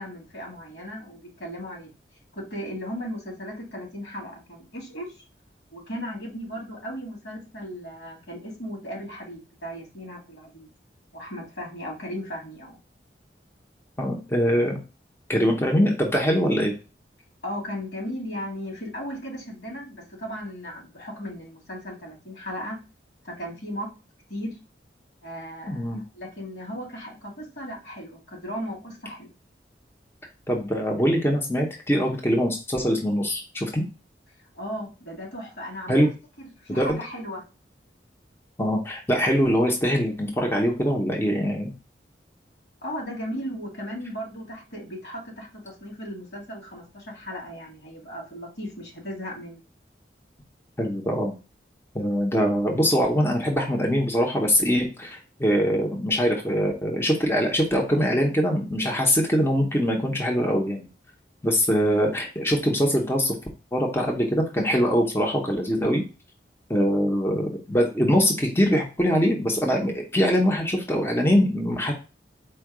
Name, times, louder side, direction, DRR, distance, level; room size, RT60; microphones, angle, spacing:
voice 1, 0.0-1.9 2.3-5.1 5.7-10.7 11.1-12.8 17.4-22.8 23.2-23.9 24.3-24.6 25.2-29.3 34.5-36.1 36.4-37.4 42.8-49.6, equal, 80° left, -1 dB, 2.2 m, -36 dB
voice 2, 14.0-14.8 15.3-16.7 25.7-26.0 30.5-33.8 35.9-36.1 36.8-37.0 38.6-41.7 50.8-51.3 51.9-60.9 61.4-63.3 63.7-66.0 66.7-71.9, equal, 15° left, 0 dB, 0.7 m, -23 dB
4.4 x 2.3 x 4.7 m, 0.31 s
head